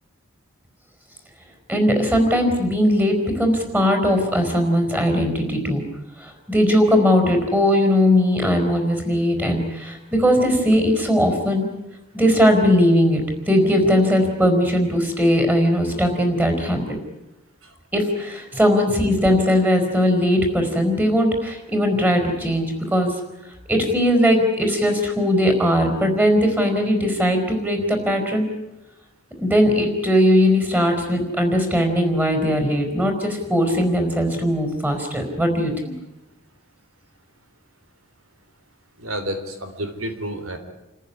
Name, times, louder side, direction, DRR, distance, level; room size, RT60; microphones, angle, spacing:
voice 1, 1.7-5.8 6.2-11.7 12.1-16.8 17.9-23.1 23.7-28.5 29.4-35.9, equal, 10° right, 5 dB, 4.5 m, -19 dB
voice 2, 39.0-40.6, equal, 85° right, 7 dB, 3.4 m, -30 dB
28.5 x 14.5 x 10.0 m, 0.98 s
head